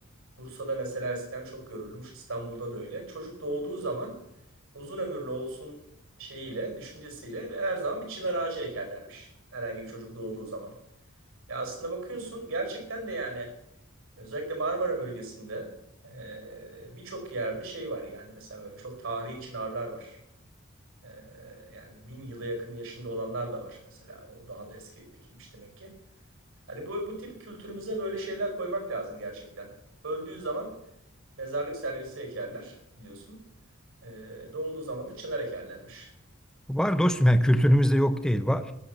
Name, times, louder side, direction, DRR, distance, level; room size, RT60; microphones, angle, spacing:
voice 1, 0.3-4.2 4.7-5.8 6.2-10.7 11.5-13.5 14.2-15.7 16.0-20.2 21.0-25.9 26.7-29.7 30.0-30.7 31.4-33.4 34.0-36.1, right 2 dB, 70° right, 3 dB, 4.8 m, -35 dB
voice 2, 36.7-38.7, equal, 5° left, 9 dB, 0.8 m, -22 dB
19.5 x 7.7 x 6.6 m, 0.81 s
head